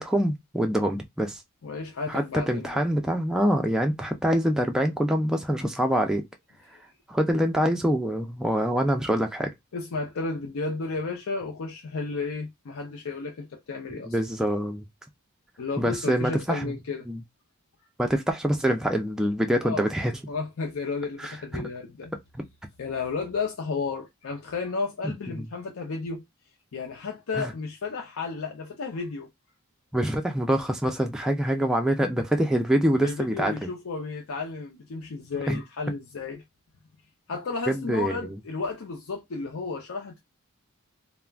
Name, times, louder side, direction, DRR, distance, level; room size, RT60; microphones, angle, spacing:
voice 1, 0.0-1.4 2.1-6.2 7.1-9.5 14.1-14.8 15.8-16.7 17.1-17.2 18.0-20.2 21.2-21.7 25.0-25.5 27.4-27.5 29.9-33.7 35.5-35.6 37.7-38.3, equal, 5° right, 0.3 m, -25 dB
voice 2, 1.6-2.7 6.7-6.8 9.7-14.1 15.6-17.1 19.6-19.9 20.3-22.1 22.8-26.2 26.7-29.3 33.0-36.4 37.3-40.2, left 4 dB, 75° left, 0.5 m, -33 dB
2.3 x 2.0 x 3.3 m
head